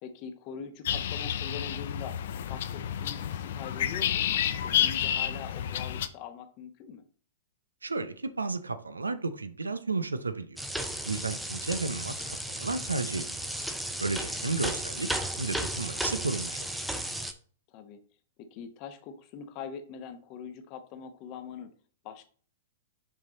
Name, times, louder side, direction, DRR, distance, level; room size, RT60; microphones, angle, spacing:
voice 1, 0.0-2.2 2.5-4.3 4.6-7.0 14.2-14.7 17.7-18.0 18.4-21.7 22.0-22.2, left 7 dB, 40° left, 8 dB, 1.0 m, -43 dB
sound 1, 0.8-6.1, left 10 dB, 60° left, 0.6 m, -30 dB
voice 2, 7.8-10.6 11.0-13.3 14.0-15.1 15.4-16.6, right 3 dB, 85° right, 11 dB, 0.7 m, -32 dB
sound 2, 10.6-17.3, right 1 dB, 5° right, 0.7 m, -34 dB
5.9 x 4.6 x 3.9 m, 0.43 s
figure-of-eight pair, 105°, 0 cm